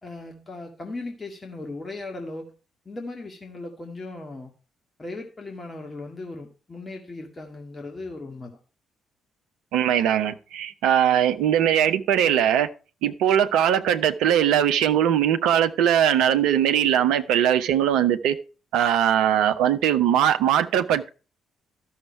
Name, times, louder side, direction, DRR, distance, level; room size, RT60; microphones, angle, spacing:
voice 1, 0.0-2.5 2.9-4.5 5.0-8.6, left 2 dB, 25° left, 2.0 m, -37 dB
voice 2, 9.7-12.7 13.0-18.4 18.7-21.1, right 10 dB, 65° right, 0.7 m, -20 dB
12.5 x 6.5 x 4.7 m
figure-of-eight pair, 40°, 0 cm